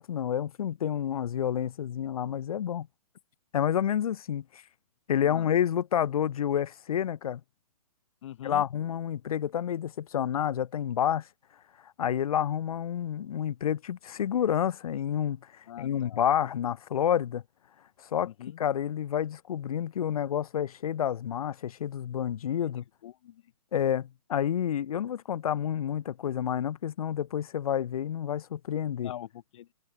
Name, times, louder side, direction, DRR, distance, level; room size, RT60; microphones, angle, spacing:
voice 1, 0.0-2.9 3.5-4.6 5.1-7.4 8.4-11.3 12.0-17.4 18.1-18.3 18.6-22.8 23.7-29.1, left 9 dB, 70° left, 0.6 m, -29 dB
voice 2, 8.2-8.6 15.7-16.2 18.3-18.6 23.0-23.4 29.0-29.7, left 12 dB, 55° left, 2.0 m, -43 dB
hypercardioid pair, 140°, 19 cm